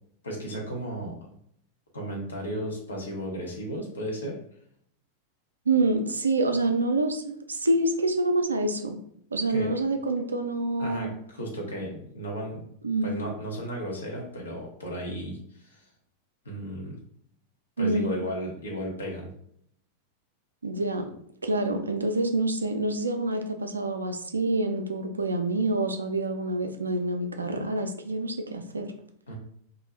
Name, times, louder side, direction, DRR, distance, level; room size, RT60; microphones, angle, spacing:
voice 1, 0.2-1.2 1.9-4.4 9.5-9.7 10.8-12.6 13.0-15.9 16.4-17.0 17.8-19.3 29.3-29.4, equal, 70° left, -1 dB, 0.7 m, -34 dB
voice 2, 5.7-9.0 9.3-11.1 12.8-13.1 17.8-18.1 20.6-21.1 21.4-28.9, right 2 dB, 75° right, 7 dB, 0.3 m, -27 dB
2.4 x 2.1 x 3.1 m, 0.67 s
figure-of-eight pair, 90°, 0 cm